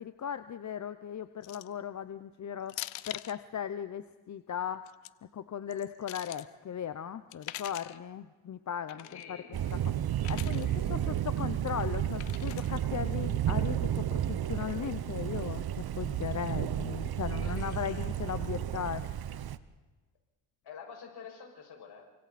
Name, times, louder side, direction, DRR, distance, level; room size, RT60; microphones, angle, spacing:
voice 1, 0.0-2.8 3.1-4.9 5.3-9.4 10.3-19.1, left 9 dB, 40° left, 11 dB, 0.8 m, -37 dB
sound 1, 1.4-1.8 2.7-3.4 4.7-5.1 5.7-6.5 7.3-8.0 8.9-9.3 10.2-10.7 12.2-12.8, left 17 dB, 90° left, 0.8 m, -43 dB
voice 2, 8.9-9.9 10.6-11.0 17.4-18.7 20.6-22.1, left 6 dB, 60° left, 1 dB, 6.6 m, -50 dB
Thunder, 9.5-19.6, right 10 dB, 55° right, 1.1 m, -32 dB
28.5 x 25.5 x 4.3 m, 1.3 s
cardioid pair, 95°, 45 cm